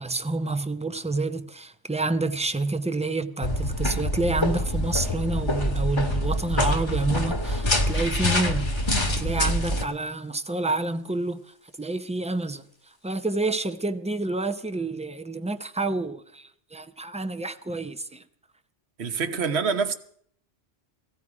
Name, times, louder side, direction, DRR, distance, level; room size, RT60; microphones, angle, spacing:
voice 1, 0.0-8.9 9.2-11.4 11.8-12.6 13.0-18.2, right 2 dB, 10° right, 0.5 m, -28 dB
sound 1, 3.4-9.8, left 1 dB, 25° left, 1.3 m, -25 dB
voice 2, 19.0-19.9, right 5 dB, 65° right, 1.2 m, -26 dB
17.5 x 15.0 x 4.8 m
omnidirectional pair, 1.2 m